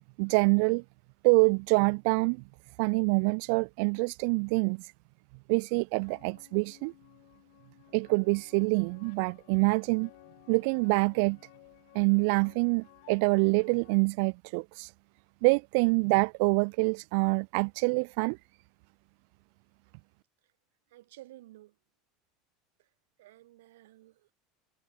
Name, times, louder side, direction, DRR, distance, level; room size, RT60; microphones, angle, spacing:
voice 1, 0.2-0.8 1.2-2.4 2.8-4.9 5.5-6.9 7.9-10.1 10.5-11.4 11.9-14.9 15.4-18.4, right 36 dB, 70° right, 0.8 m, -26 dB
sound 1, 6.0-14.0, left 25 dB, 75° left, 7.9 m, -58 dB
voice 2, 20.9-21.8 22.8-22.9 23.2-24.3, right 16 dB, 85° right, 6.3 m, -53 dB
supercardioid pair, 120°, 0 cm